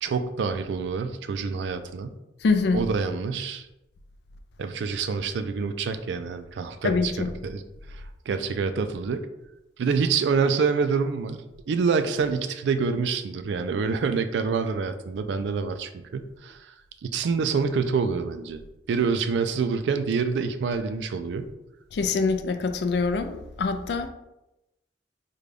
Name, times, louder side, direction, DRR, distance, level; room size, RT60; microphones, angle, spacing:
voice 1, 0.0-2.1 2.7-3.7 4.6-7.1 7.4-7.6 7.9-9.3 9.8-16.6 17.0-18.6 18.9-21.5, right 5 dB, 85° right, 10 dB, 0.3 m, -26 dB
voice 2, 2.4-2.8 6.8-7.3 21.9-24.1, left 4 dB, 70° left, 7 dB, 0.3 m, -24 dB
3.7 x 2.2 x 3.3 m, 0.92 s
head